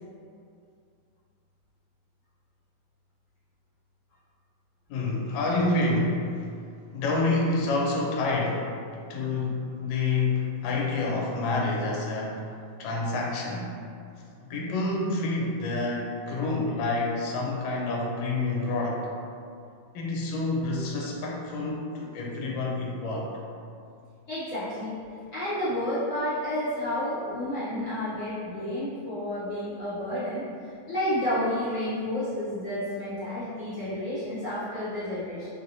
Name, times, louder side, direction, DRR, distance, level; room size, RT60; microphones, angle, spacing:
voice 1, 4.9-6.5 6.9-8.7 9.1-12.5 12.8-13.8 14.5-19.0 19.9-23.3, left 2 dB, 75° left, -2 dB, 1.2 m, -28 dB
voice 2, 24.3-24.9 25.3-30.4 30.9-35.5, left 1 dB, 55° left, -13 dB, 0.8 m, -30 dB
3.2 x 2.7 x 2.7 m, 2.4 s
omnidirectional pair, 2.3 m